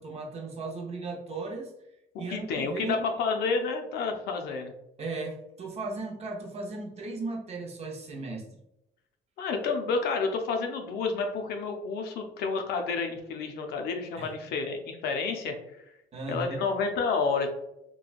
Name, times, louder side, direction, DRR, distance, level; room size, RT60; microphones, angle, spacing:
voice 1, 0.0-1.7 2.2-3.1 5.0-8.4 14.2-14.5 16.1-16.6, right 3 dB, 40° right, 0 dB, 0.7 m, -36 dB
voice 2, 2.3-4.7 9.4-15.6 16.3-17.5, left 4 dB, 75° left, 4 dB, 0.5 m, -30 dB
3.0 x 2.2 x 2.4 m, 0.86 s
cardioid pair, 110°, 17 cm